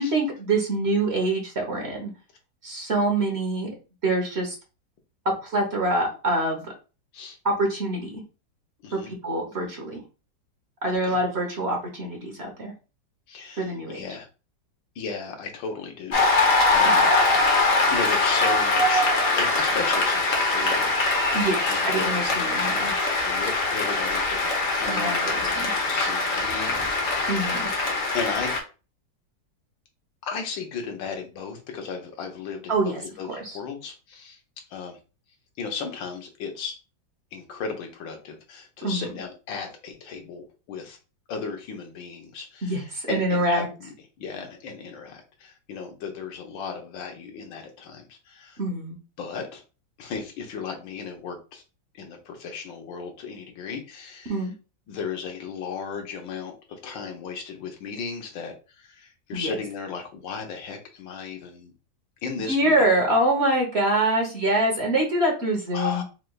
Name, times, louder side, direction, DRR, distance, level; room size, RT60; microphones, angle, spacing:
voice 1, 0.0-2.1 2.6-3.7 4.0-4.5 5.4-6.7 7.4-8.2 8.9-10.0 10.8-12.7 13.6-14.0 16.8-17.1 21.3-22.9 24.9-25.2 25.5-25.7 27.3-27.7 32.7-33.0 33.4-33.6 38.8-39.1 42.6-43.7 48.6-49.0 54.3-54.5 59.3-59.5 62.5-66.0, right 1 dB, 45° right, 1 dB, 1.1 m, -25 dB
voice 2, 8.8-9.1 11.0-11.2 13.3-14.3 15.0-17.0 17.4-19.1 19.4-21.4 21.7-22.2 23.2-27.5 28.1-28.5 30.2-34.4 34.7-35.0 35.6-36.8 37.3-41.0 41.3-48.6 49.2-49.6 50.0-51.6 51.9-54.4 54.9-61.7 62.2-62.8 65.7-66.0, left 5 dB, 90° left, 3 dB, 1.6 m, -35 dB
Cheering / Applause, 16.1-28.6, left 2 dB, 50° left, 1.2 m, -22 dB
4.7 x 3.3 x 2.3 m, 0.32 s
omnidirectional pair, 2.0 m